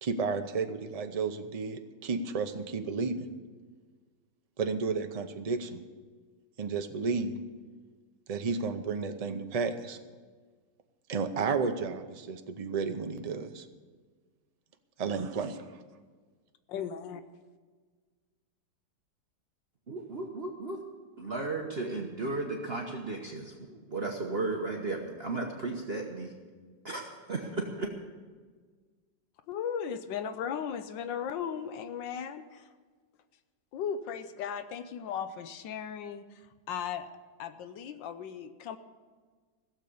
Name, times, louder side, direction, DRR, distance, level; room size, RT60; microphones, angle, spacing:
voice 1, 0.0-3.3 4.6-5.8 6.6-7.4 8.3-10.0 11.1-13.7 15.0-15.6, right 4 dB, 70° right, 7 dB, 0.3 m, -32 dB
voice 2, 16.7-17.2 29.5-32.7 33.7-37.1 37.4-38.8, left 8 dB, 85° left, 10 dB, 1.5 m, -36 dB
voice 3, 19.9-20.8 21.2-26.3 26.8-27.9, right 3 dB, 40° right, 0 dB, 1.2 m, -35 dB
15.5 x 7.5 x 8.5 m, 1.5 s
omnidirectional pair, 1.9 m